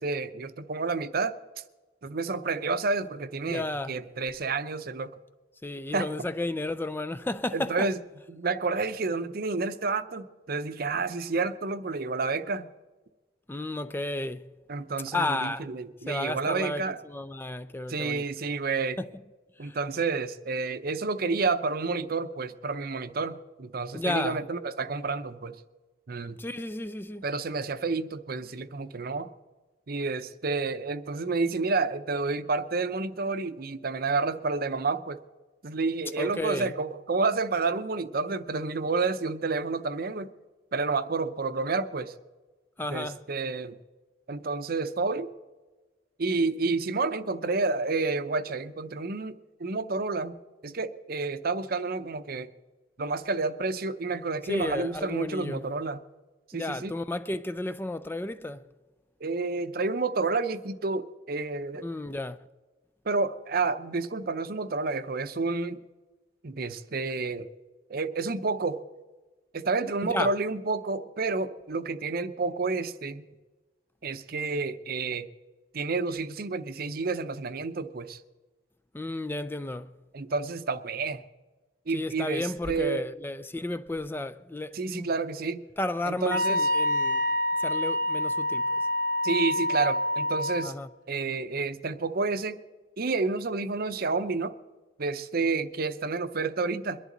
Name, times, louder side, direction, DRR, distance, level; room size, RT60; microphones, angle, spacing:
voice 1, 0.0-1.4 2.0-5.1 5.9-6.1 7.5-8.0 8.3-12.7 14.7-17.0 17.9-19.0 19.6-25.6 26.1-26.4 27.2-29.3 29.9-35.2 35.6-40.3 40.7-42.1 42.9-43.8 44.3-45.3 46.2-49.3 49.6-50.3 50.6-52.5 53.0-56.0 56.5-56.9 59.2-61.9 63.1-65.8 66.4-67.5 67.9-68.8 69.5-73.2 74.0-75.3 75.7-78.2 80.1-81.2 81.9-83.0 84.7-85.6 86.1-86.7 89.2-90.7 91.1-92.6 93.0-94.5 95.0-97.0, right 3 dB, 55° right, 0.7 m, -30 dB
voice 2, 3.4-4.0 5.6-7.7 13.5-14.5 15.1-15.7 16.1-18.2 19.0-19.1 19.6-19.8 23.9-24.4 26.4-27.2 36.2-36.7 42.8-43.2 54.5-55.6 56.5-58.7 61.8-62.4 70.0-70.3 78.9-79.9 81.9-85.1 85.8-87.2 87.6-88.8 90.6-90.9, left 2 dB, 10° left, 0.4 m, -32 dB
Wind instrument woodwind instrument, 86.3-90.7, left 1 dB, 85° right, 0.9 m, -27 dB
22.5 x 11.0 x 3.9 m
head